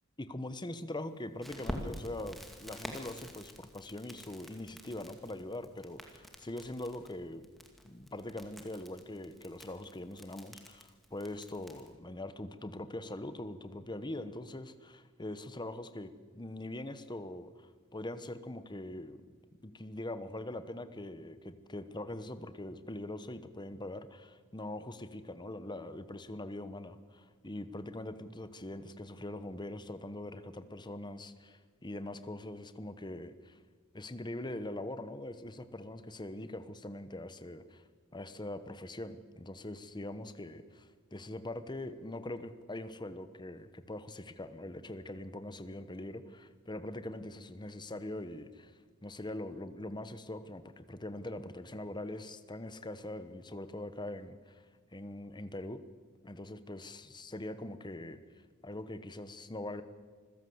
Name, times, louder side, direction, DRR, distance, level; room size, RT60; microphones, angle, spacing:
voice 1, 0.2-7.5 7.8-19.2 19.6-33.6 33.9-37.8 38.1-48.7 49.0-54.6 54.9-55.8 56.2-58.2 58.6-59.8, left 1 dB, 20° left, 11 dB, 1.1 m, -42 dB
Crackle, 1.4-11.9, equal, ahead, 2.3 m, -48 dB
26.5 x 16.0 x 8.0 m, 1.5 s
head